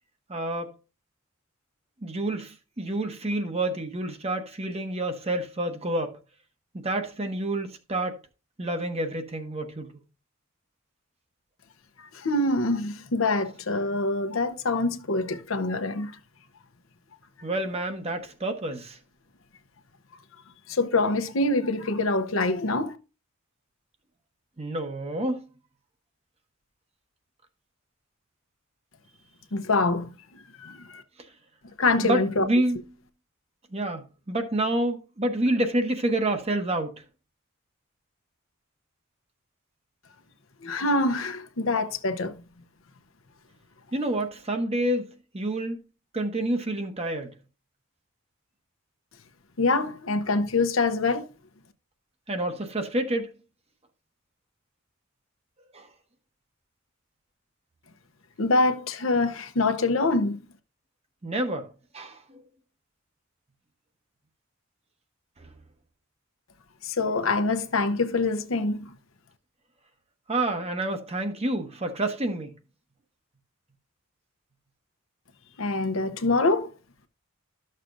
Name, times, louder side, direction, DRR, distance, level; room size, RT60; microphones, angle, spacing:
voice 1, 0.3-0.7 2.0-6.2 6.7-8.2 8.6-9.9 17.4-19.0 24.6-25.4 32.0-32.8 33.7-37.0 43.9-45.8 46.1-47.3 52.3-53.3 55.7-55.9 61.2-61.7 61.9-62.4 70.3-72.5, right 1 dB, 30° right, 1.0 m, -28 dB
voice 2, 12.1-16.1 20.7-23.0 29.5-30.1 30.6-31.0 31.8-32.5 40.6-42.3 49.6-51.3 58.4-60.4 66.8-68.9 75.6-76.7, left 3 dB, 80° left, 0.8 m, -25 dB
12.5 x 6.6 x 2.6 m
head